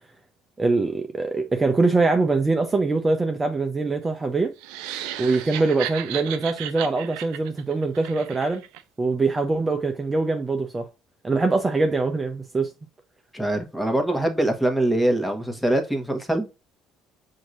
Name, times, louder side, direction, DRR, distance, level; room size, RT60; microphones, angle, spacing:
voice 1, 0.6-4.5 5.2-8.6 9.0-10.9 11.2-12.7, right 3 dB, 25° right, 0.7 m, -23 dB
sound 1, 4.6-8.8, right 12 dB, 75° right, 0.4 m, -34 dB
voice 2, 13.3-16.5, right 1 dB, 5° left, 1.3 m, -23 dB
6.2 x 2.8 x 2.5 m
hypercardioid pair, 65°, 0 cm